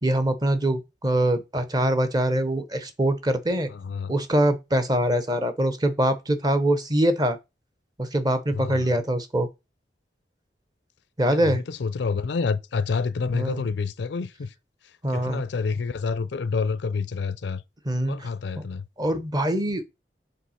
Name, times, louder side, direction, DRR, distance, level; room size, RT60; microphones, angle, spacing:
voice 1, 0.0-3.7 4.1-7.4 8.0-9.5 11.2-11.6 13.3-13.6 15.0-15.4 17.9-18.3 18.6-18.7 19.0-19.8, right 1 dB, 20° right, 0.7 m, -23 dB
voice 2, 3.7-4.1 8.5-8.9 11.3-14.5 15.1-17.6 18.1-18.8, left 4 dB, 70° left, 0.5 m, -28 dB
5.3 x 3.5 x 5.6 m
head